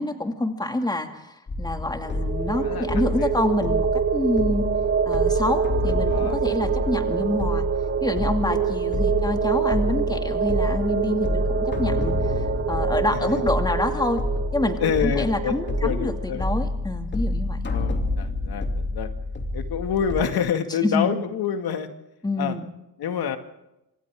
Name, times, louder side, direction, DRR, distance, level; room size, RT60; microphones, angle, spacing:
voice 1, 0.0-4.6 5.1-7.7 8.0-14.2 14.5-17.6 20.8-21.2 22.2-22.7, left 2 dB, 10° left, 5 dB, 2.3 m, -27 dB
sound 1, 1.5-20.2, left 2 dB, 30° left, 2.8 m, -28 dB
sound 2, 2.0-16.4, right 7 dB, 35° right, 1.2 m, -26 dB
voice 2, 2.5-3.3 6.0-6.4 9.1-9.3 13.1-13.4 14.8-16.4 17.7-19.1 19.5-21.9 22.4-22.6 23.0-23.4, left 8 dB, 85° left, 7 dB, 2.2 m, -27 dB
26.5 x 26.5 x 3.7 m, 0.89 s
wide cardioid pair, 145°, 37 cm